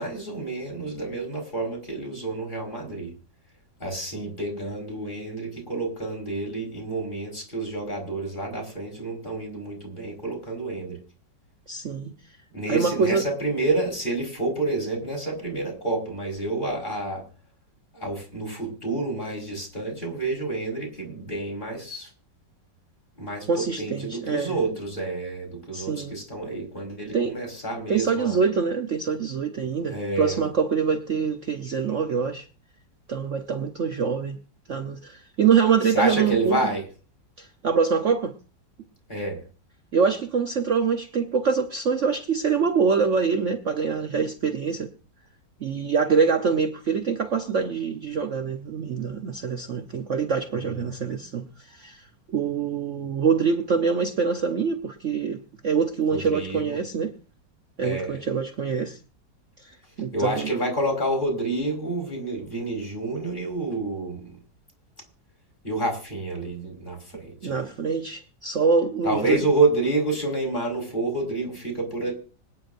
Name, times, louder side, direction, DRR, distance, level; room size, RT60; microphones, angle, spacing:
voice 1, 0.0-3.1 3.8-11.0 12.5-17.2 17.9-22.1 23.2-28.4 29.8-30.5 35.9-36.8 39.1-39.4 50.5-50.7 56.1-56.8 57.8-58.2 60.1-64.3 65.6-67.7 69.0-72.1, right 2 dB, 25° left, 4.9 m, -29 dB
voice 2, 11.7-12.1 12.7-13.2 23.5-24.6 25.7-26.1 27.1-27.3 27.9-32.5 33.1-34.4 34.7-36.6 37.4-38.3 39.9-44.9 45.6-57.1 57.8-59.0 59.6-59.7 60.0-60.5 67.4-69.4, right 6 dB, 50° right, 1.1 m, -25 dB
25.5 x 9.7 x 2.6 m
omnidirectional pair, 1.9 m